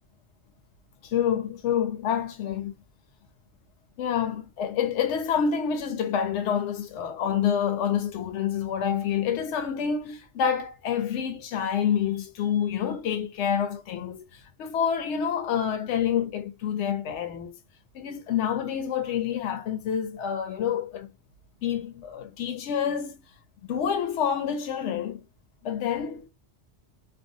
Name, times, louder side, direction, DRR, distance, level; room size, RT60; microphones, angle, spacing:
voice 1, 1.0-2.7 4.0-17.6 17.9-21.1 21.6-23.2 23.7-25.2 25.6-26.3, left 8 dB, 85° left, 0.9 m, -28 dB
2.6 x 2.3 x 2.6 m
omnidirectional pair, 1.2 m